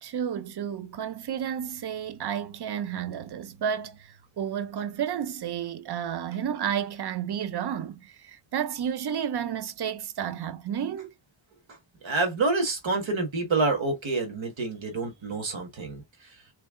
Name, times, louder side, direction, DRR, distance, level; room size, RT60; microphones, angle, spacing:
voice 1, 0.0-4.0 4.4-11.1, right 8 dB, 60° right, 0.6 m, -31 dB
voice 2, 12.0-16.0, right 3 dB, 85° right, 1.6 m, -27 dB
3.5 x 3.4 x 3.6 m
wide cardioid pair, 125°, 45 cm